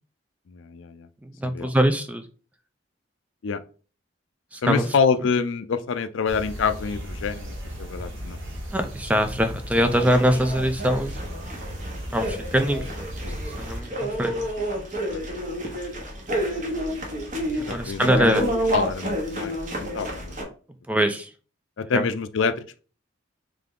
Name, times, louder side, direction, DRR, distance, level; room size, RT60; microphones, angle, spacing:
voice 1, 0.5-1.1 1.5-1.7 3.4-3.6 4.6-8.4 15.1-15.2 17.7-20.4 21.8-22.8, left 5 dB, 80° left, 12 dB, 0.4 m, -26 dB
voice 2, 1.2-2.2 4.5-4.8 8.7-11.2 12.1-13.1 13.6-14.4 17.6-18.5 20.9-21.3 21.9-22.0, equal, 5° right, 8 dB, 0.4 m, -23 dB
sound 1, 6.3-13.8, equal, 75° right, 1.1 m, -36 dB
sound 2, 9.9-20.4, right 1 dB, 40° right, 1.0 m, -30 dB
3.7 x 3.3 x 3.7 m, 0.38 s
head